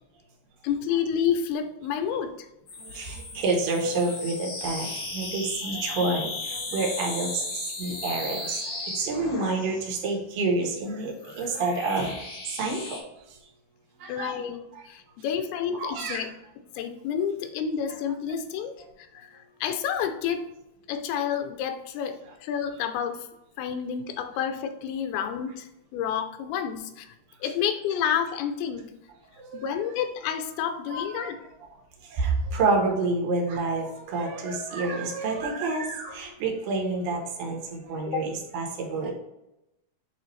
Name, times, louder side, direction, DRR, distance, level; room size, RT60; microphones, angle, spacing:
voice 1, 0.6-2.5 14.1-16.3 16.6-20.5 20.9-23.3 23.6-27.2 27.4-28.9 29.5-31.4 38.1-38.2, left 8 dB, 80° left, 7 dB, 2.6 m, -30 dB
sound 1, 2.7-10.0 10.8-13.0, left 2 dB, 55° left, 1.5 m, -36 dB
voice 2, 2.8-13.0 13.3-13.4 14.0-14.4 14.7-14.8 15.8-16.2 29.4-29.7 30.9-31.3 32.0-39.1, right 3 dB, 70° right, 0 dB, 2.7 m, -29 dB
8.5 x 3.4 x 3.2 m, 0.88 s
omnidirectional pair, 4.5 m